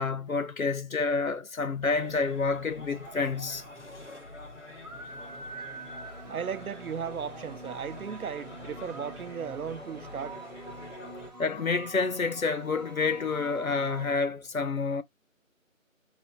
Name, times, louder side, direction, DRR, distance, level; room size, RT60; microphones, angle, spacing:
voice 1, 0.0-3.6 11.4-15.0, left 4 dB, 75° left, 1.0 m, -28 dB
sound 1, 1.8-11.3, left 1 dB, 55° left, 1.9 m, -46 dB
sound 2, 4.8-14.2, right 2 dB, 30° right, 1.1 m, -46 dB
voice 2, 6.3-10.4, right 7 dB, 90° right, 0.6 m, -36 dB
4.1 x 2.6 x 4.4 m
figure-of-eight pair, 175°, 41 cm